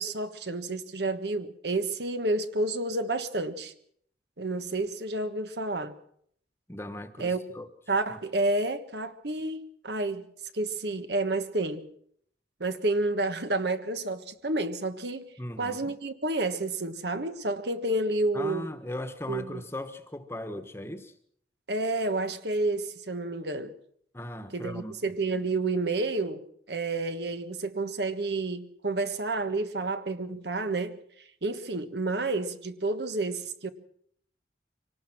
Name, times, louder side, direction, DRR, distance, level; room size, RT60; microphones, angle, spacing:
voice 1, 0.0-3.7 4.4-6.0 7.2-7.4 7.9-10.3 10.5-11.9 12.6-15.3 15.6-18.7 19.3-19.6 21.7-23.7 24.5-31.0 31.4-33.7, right 2 dB, 70° right, 1.4 m, -30 dB
voice 2, 6.7-7.7 8.1-8.2 15.4-15.9 18.3-21.1 24.1-24.9, left 1 dB, 15° left, 1.3 m, -38 dB
25.0 x 18.5 x 6.1 m
head